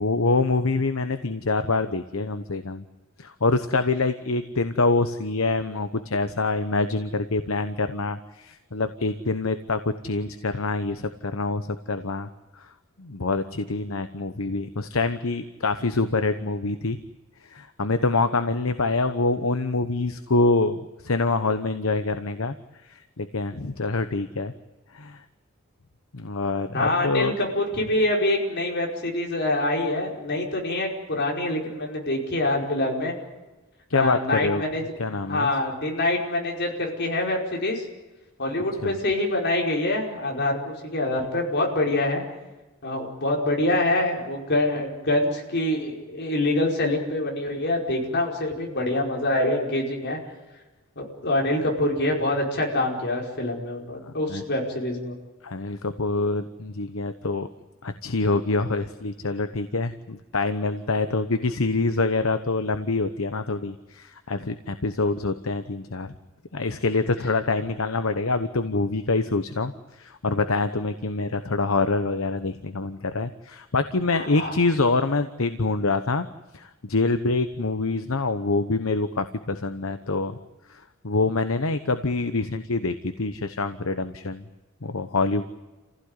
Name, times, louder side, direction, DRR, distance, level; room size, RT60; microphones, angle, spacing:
voice 1, 0.0-2.8 3.2-12.3 12.5-12.7 13.0-17.0 17.5-22.5 22.8-24.5 24.9-25.2 26.1-27.3 33.9-34.6 35.0-35.5 38.8-38.9 54.1-54.4 55.4-57.5 57.8-66.1 66.5-76.3 76.5-80.4 80.7-84.4 84.8-85.4, left 3 dB, 70° left, 10 dB, 1.0 m, -25 dB
voice 2, 26.7-33.1 33.9-34.8 35.1-37.8 38.4-42.2 42.8-50.2 51.0-55.1 74.1-74.5, left 1 dB, 50° left, 0 dB, 5.1 m, -25 dB
28.5 x 16.0 x 9.8 m, 1.1 s
head